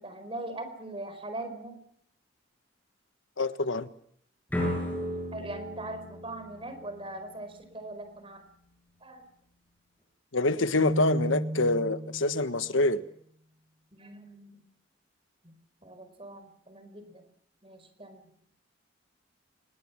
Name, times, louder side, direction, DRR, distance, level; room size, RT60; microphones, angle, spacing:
voice 1, 0.0-1.8 5.3-8.5 9.0-9.3 13.9-14.7 15.4-15.5 15.8-17.3 17.6-18.2, right 2 dB, 30° right, 4.9 m, -41 dB
voice 2, 3.4-3.9 10.3-13.0, left 2 dB, 90° left, 1.4 m, -26 dB
sound 1, 4.5-7.4, equal, 10° left, 8.0 m, -34 dB
Keyboard (musical), 10.8-12.6, equal, 50° right, 1.3 m, -32 dB
25.5 x 22.0 x 7.4 m
head